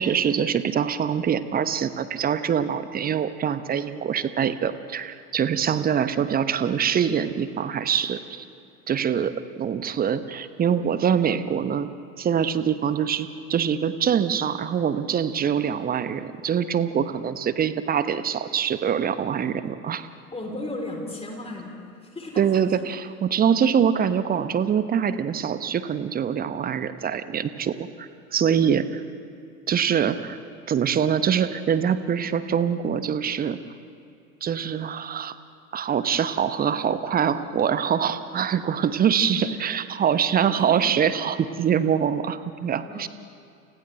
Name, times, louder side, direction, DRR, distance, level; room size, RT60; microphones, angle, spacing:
voice 1, 0.0-8.4 8.9-20.1 22.4-29.0 29.7-30.4 30.7-33.6 34.4-35.4 35.7-43.1, right 8 dB, 20° right, 13 dB, 0.9 m, -24 dB
voice 2, 20.3-22.9 39.2-39.5 40.5-40.8 42.8-43.1, left 2 dB, 15° left, 0 dB, 3.9 m, -36 dB
29.5 x 29.5 x 3.4 m, 2.5 s
figure-of-eight pair, 80°, 44 cm